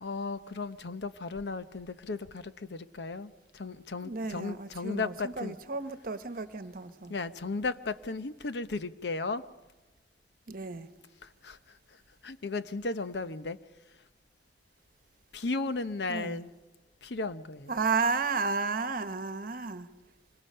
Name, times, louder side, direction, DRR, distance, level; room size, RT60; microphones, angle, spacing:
voice 1, 0.0-5.5 7.1-9.4 11.4-11.6 12.2-13.6 15.3-16.5 17.0-17.7, left 3 dB, 70° left, 0.8 m, -35 dB
voice 2, 4.0-7.1 10.5-10.9 16.1-16.4 17.7-19.9, right 4 dB, 55° right, 1.2 m, -32 dB
25.5 x 24.0 x 5.6 m
head